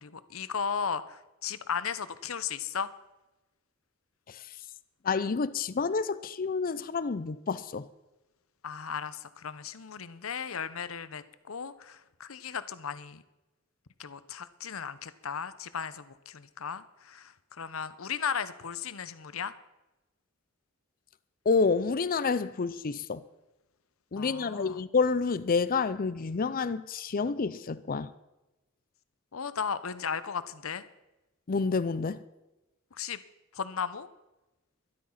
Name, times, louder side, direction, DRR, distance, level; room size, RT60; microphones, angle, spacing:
voice 1, 0.0-2.9 8.6-13.2 14.0-19.5 24.2-24.8 29.3-30.8 32.9-33.2 33.5-34.1, left 6 dB, 70° left, 0.8 m, -36 dB
voice 2, 5.0-7.9 21.5-23.2 24.1-28.1 31.5-32.2, left 4 dB, 40° left, 0.5 m, -29 dB
12.5 x 12.0 x 5.8 m
head